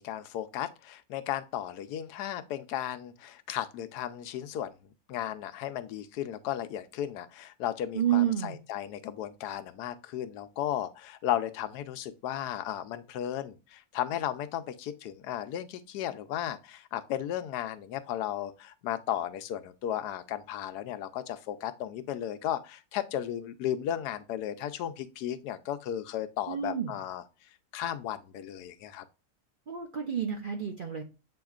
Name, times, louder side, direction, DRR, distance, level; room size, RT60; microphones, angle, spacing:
voice 1, 0.0-4.8 5.1-27.2 27.7-29.0, left 11 dB, 90° left, 1.1 m, -35 dB
voice 2, 7.9-8.6 26.5-27.0 29.7-31.0, right 10 dB, 55° right, 0.6 m, -29 dB
7.8 x 2.8 x 2.3 m
omnidirectional pair, 1.7 m